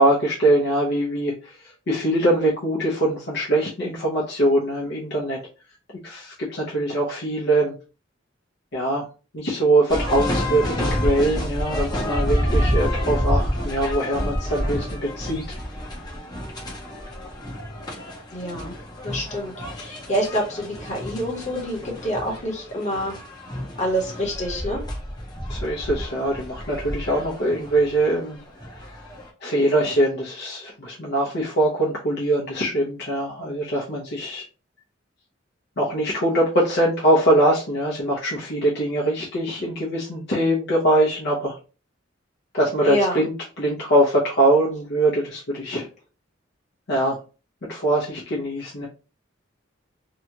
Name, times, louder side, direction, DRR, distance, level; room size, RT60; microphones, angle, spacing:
voice 1, 0.0-1.5 1.9-5.4 6.0-7.7 8.7-9.0 9.3-14.9 15.2-15.4 25.5-28.4 29.4-34.4 35.8-41.5 42.5-43.3 43.6-45.9 46.9-47.2 47.7-48.9, right 1 dB, 60° left, -4 dB, 0.7 m, -22 dB
sound 1, 9.9-29.3, equal, 20° left, 0.7 m, -29 dB
voice 2, 18.3-18.8 19.0-23.1 23.8-24.8 42.8-43.2, equal, 40° left, -1 dB, 1.1 m, -27 dB
2.8 x 2.3 x 2.8 m, 0.34 s
head